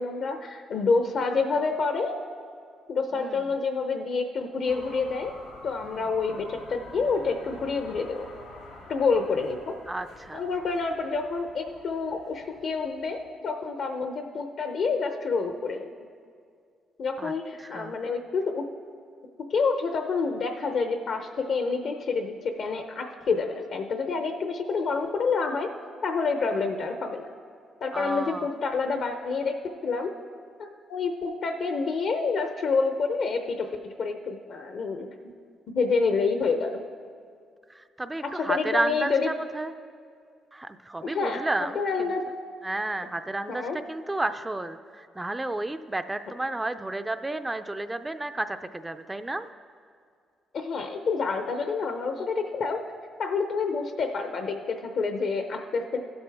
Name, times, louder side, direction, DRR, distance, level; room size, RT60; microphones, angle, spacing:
voice 1, 0.0-2.2 2.9-5.3 5.6-8.3 8.9-9.7 10.3-15.9 17.0-18.6 19.5-25.7 26.0-27.3 27.8-29.5 29.8-30.1 30.6-33.7 34.0-35.1 35.7-36.8 38.3-39.3 41.0-41.4 41.7-42.2 43.5-43.8 50.5-52.8 53.2-56.0, left 4 dB, 65° left, 5 dB, 0.7 m, -28 dB
sound 1, 4.6-13.3, left 2 dB, 80° left, 2.7 m, -48 dB
voice 2, 9.9-10.4 17.2-17.3 17.6-18.1 26.5-26.6 27.9-28.5 37.7-39.7 40.5-42.1 42.6-43.6 43.9-49.5, right 2 dB, 15° right, 9 dB, 0.4 m, -32 dB
16.0 x 7.9 x 3.4 m, 2.2 s
cardioid pair, 90°, 0 cm